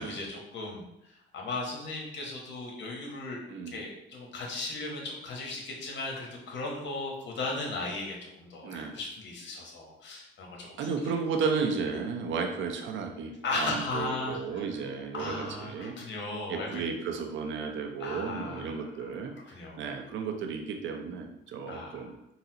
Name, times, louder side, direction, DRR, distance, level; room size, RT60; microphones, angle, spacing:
voice 1, 0.0-3.4 3.7-10.9 11.9-12.0 13.4-14.6 15.1-16.8 18.0-19.1 19.5-19.8 21.7-22.1, left 3 dB, 65° left, -1 dB, 0.9 m, -37 dB
voice 2, 8.6-9.0 10.8-15.9 16.5-22.1, right 5 dB, 75° right, 4 dB, 0.5 m, -33 dB
4.0 x 2.0 x 2.7 m, 0.83 s
cardioid pair, 90°, 20 cm